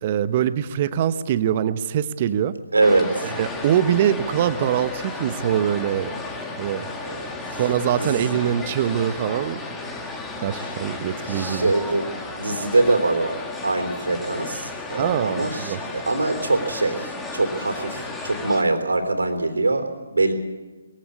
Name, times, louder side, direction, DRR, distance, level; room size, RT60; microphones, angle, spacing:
voice 1, 0.0-2.6 3.2-6.1 6.6-6.9 7.6-9.6 10.4-11.7 15.0-15.8, right 10 dB, 30° right, 13 dB, 1.0 m, -23 dB
voice 2, 2.7-3.3 7.0-7.3 7.9-8.4 10.6-10.7 11.3-12.0 12.4-20.3, right 2 dB, 70° right, 7 dB, 3.7 m, -23 dB
sound 1, 2.8-18.6, left 3 dB, 10° left, 2.0 m, -33 dB
21.5 x 16.0 x 8.6 m, 1.3 s
figure-of-eight pair, 140°, 0 cm